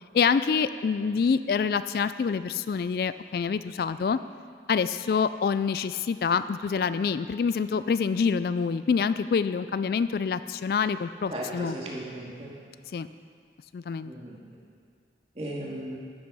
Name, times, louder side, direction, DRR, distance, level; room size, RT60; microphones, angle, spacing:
voice 1, 0.1-4.2 4.7-11.8 12.9-13.1 13.7-14.1, left 6 dB, 55° left, 13 dB, 0.3 m, -26 dB
voice 2, 11.3-12.5 14.0-14.4 15.4-16.0, right 1 dB, 35° right, -4 dB, 2.1 m, -36 dB
14.0 x 7.8 x 5.5 m, 2.2 s
head